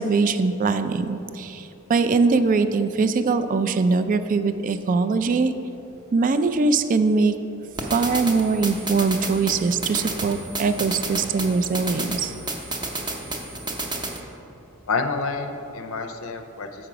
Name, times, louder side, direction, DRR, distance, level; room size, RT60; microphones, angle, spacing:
voice 1, 0.0-5.5 6.1-7.3 7.9-12.3, right 4 dB, 40° right, 11 dB, 0.3 m, -22 dB
sound 1, 7.7-14.2, right 2 dB, 20° right, 0.7 m, -31 dB
voice 2, 14.9-16.9, left 4 dB, 70° left, 6 dB, 0.5 m, -28 dB
7.4 x 5.0 x 5.8 m, 2.8 s
head